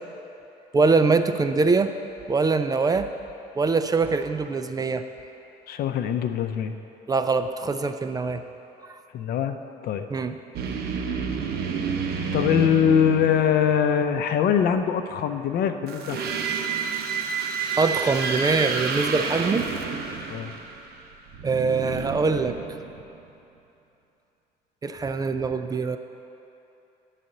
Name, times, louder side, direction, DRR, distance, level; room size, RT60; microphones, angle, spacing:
voice 1, 0.7-1.9 2.3-3.1 3.6-5.0 7.1-8.4 8.8-9.0 10.1-10.4 17.8-19.7 21.4-22.6 24.8-26.0, right 4 dB, 20° right, 9 dB, 0.4 m, -23 dB
voice 2, 5.7-6.7 9.1-9.6 9.8-10.1 12.3-16.3 20.3-20.5, left 8 dB, 65° left, 8 dB, 0.6 m, -23 dB
sound 1, 10.5-13.8 15.9-23.2, right 5 dB, 70° right, 0.9 m, -30 dB
11.5 x 4.2 x 7.7 m, 2.9 s
cardioid pair, 110°, 17 cm